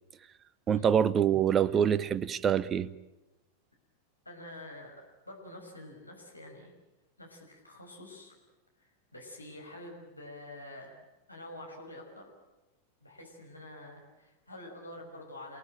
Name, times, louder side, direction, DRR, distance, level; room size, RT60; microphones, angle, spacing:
voice 1, 0.7-2.9, right 8 dB, 25° right, 18 dB, 0.9 m, -25 dB
voice 2, 4.2-6.7 7.2-8.4 8.8-11.0 11.3-12.3 13.0-15.6, left 1 dB, 85° left, 0 dB, 5.9 m, -47 dB
28.0 x 18.5 x 9.1 m, 1.0 s
figure-of-eight pair, 90°, 0 cm